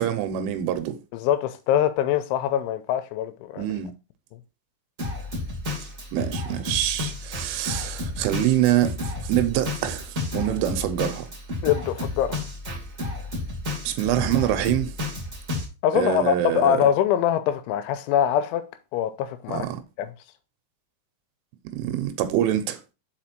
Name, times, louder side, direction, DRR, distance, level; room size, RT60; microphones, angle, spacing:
voice 1, 0.0-1.0 3.6-3.9 6.1-11.3 13.9-15.0 15.9-16.8 19.5-19.8 21.7-22.8, right 12 dB, 90° right, 3.3 m, -25 dB
voice 2, 1.1-3.7 11.6-12.4 15.8-18.6 18.9-19.7 20.0-20.1, left 10 dB, 85° left, 3.1 m, -23 dB
Drum kit, 5.0-15.6, left 2 dB, 25° right, 1.9 m, -31 dB
6.2 x 5.0 x 4.4 m
omnidirectional pair, 5.5 m